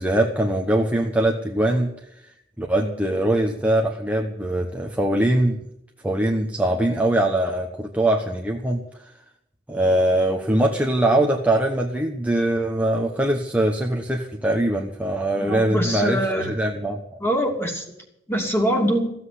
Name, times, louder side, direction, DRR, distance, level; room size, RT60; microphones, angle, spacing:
voice 1, 0.0-1.9 2.6-5.6 6.0-9.1 9.7-16.2 16.5-17.0, right 1 dB, 10° right, 0 dB, 1.1 m, -22 dB
voice 2, 15.4-16.5 17.2-17.8 18.3-19.1, equal, 15° left, 1 dB, 2.8 m, -23 dB
15.0 x 8.0 x 9.9 m, 0.81 s
head